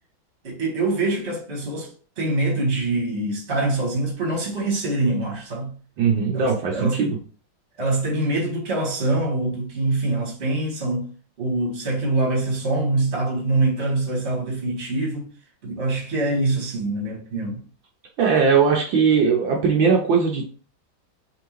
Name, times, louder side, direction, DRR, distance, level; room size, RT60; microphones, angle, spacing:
voice 1, 0.4-1.9 2.2-5.7 6.3-7.0 7.8-11.1 11.4-15.3 15.6-17.6, right 2 dB, 35° right, 1.6 m, -24 dB
voice 2, 6.0-7.2 18.2-20.5, right 5 dB, 70° right, 1.4 m, -19 dB
3.6 x 3.4 x 3.0 m
omnidirectional pair, 2.2 m